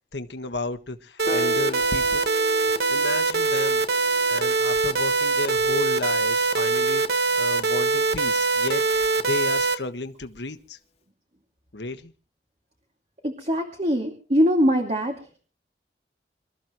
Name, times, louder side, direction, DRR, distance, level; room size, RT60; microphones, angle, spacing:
voice 1, 0.1-2.2 2.9-3.8 4.3-10.8 11.7-12.1, left 3 dB, 80° left, 8 dB, 1.5 m, -33 dB
sound 1, 1.2-9.7, right 4 dB, 65° right, 1.7 m, -23 dB
Piano, 1.3-7.6, left 1 dB, 35° left, 1.7 m, -41 dB
voice 2, 13.2-15.1, equal, 40° right, 2 dB, 2.6 m, -22 dB
27.0 x 14.0 x 3.1 m, 0.38 s
head